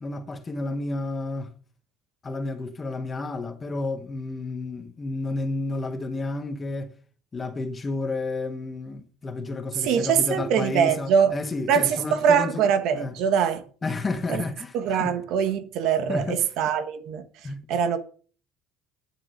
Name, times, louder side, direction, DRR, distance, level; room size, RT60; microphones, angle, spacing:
voice 1, 0.0-1.5 2.2-6.9 7.3-12.7 12.9-13.1 13.8-14.7 15.0-15.1 16.1-16.4 17.4-17.7, left 2 dB, 20° left, 1.2 m, -31 dB
voice 2, 9.8-11.4 11.7-13.6 14.3-14.4 14.7-17.2 17.7-18.0, right 7 dB, 65° right, 1.6 m, -23 dB
9.9 x 7.2 x 6.6 m
cardioid pair, 145°, 0 cm